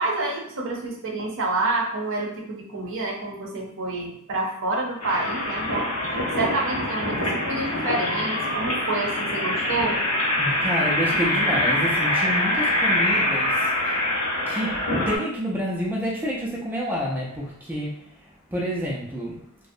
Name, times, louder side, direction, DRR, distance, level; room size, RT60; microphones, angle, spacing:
voice 1, 0.0-10.0, right 2 dB, 60° right, -1 dB, 0.6 m, -28 dB
sound 1, 5.0-15.2, left 1 dB, 80° left, 0.7 m, -24 dB
voice 2, 10.4-14.0 14.5-18.0 18.5-19.4, equal, 10° right, -5 dB, 0.3 m, -29 dB
2.5 x 2.0 x 2.5 m, 0.71 s
head